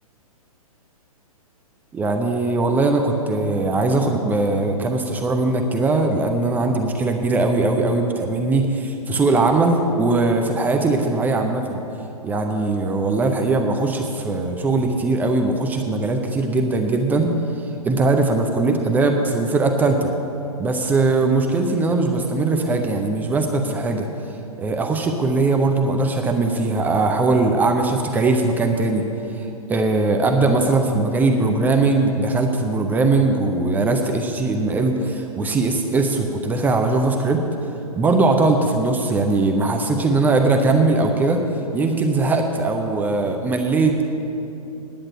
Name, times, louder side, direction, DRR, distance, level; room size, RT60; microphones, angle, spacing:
voice 1, 1.9-11.8 12.2-17.3 17.8-20.1 20.6-24.1 24.6-29.0 29.3-37.4 38.0-41.4 41.7-44.0, right 3 dB, 10° right, 4 dB, 0.5 m, -20 dB
10.5 x 8.7 x 7.6 m, 2.8 s
figure-of-eight pair, 115°, 19 cm